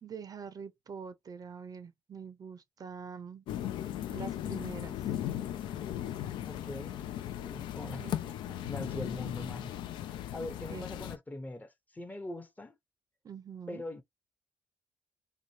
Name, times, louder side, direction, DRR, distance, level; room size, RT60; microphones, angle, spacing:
voice 1, 0.0-3.5 4.1-5.0 8.0-8.6 10.7-10.8 13.2-13.8, right 6 dB, 45° right, 0.5 m, -45 dB
sound 1, 3.5-11.2, left 12 dB, 75° left, 0.4 m, -37 dB
voice 2, 6.4-7.0 7.4-8.1 8.6-9.7 10.1-12.8 13.7-14.0, left 1 dB, 20° left, 0.8 m, -42 dB
2.9 x 2.2 x 2.7 m
hypercardioid pair, 50°, 8 cm